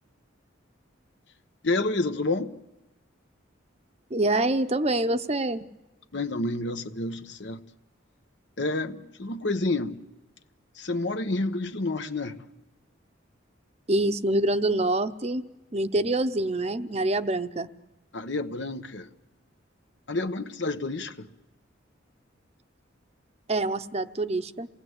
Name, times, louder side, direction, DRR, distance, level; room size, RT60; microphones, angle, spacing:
voice 1, 1.6-2.5 6.1-7.6 8.6-10.0 10.7-12.4 18.1-19.1 20.1-21.3, left 2 dB, 60° left, 1.1 m, -29 dB
voice 2, 4.1-5.7 13.9-15.4 15.7-17.7 23.5-24.7, right 2 dB, 30° right, 0.8 m, -26 dB
29.0 x 19.0 x 8.1 m
head